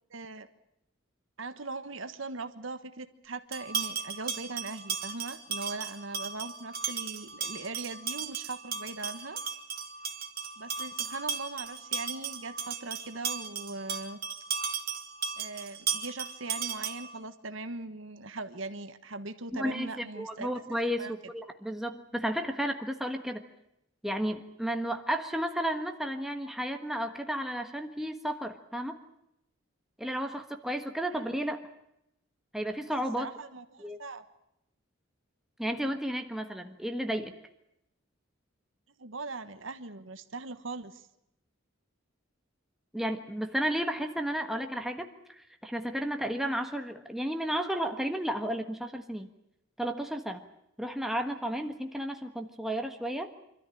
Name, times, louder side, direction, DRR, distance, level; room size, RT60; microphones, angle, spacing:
voice 1, 0.1-0.5 1.4-9.4 10.6-14.2 15.4-20.5 20.8-21.1 31.1-31.2 33.2-34.2 39.0-41.1, right 3 dB, 75° right, 9 dB, 1.3 m, -40 dB
sound 1, 3.5-17.2, right 6 dB, 50° right, 2.0 m, -36 dB
voice 2, 19.5-23.4 24.0-29.0 30.0-31.6 32.5-33.3 33.8-34.0 35.6-37.3 42.9-49.3 49.8-50.4 50.8-53.3, equal, ahead, 5 dB, 1.4 m, -33 dB
25.5 x 13.5 x 9.9 m, 0.83 s
head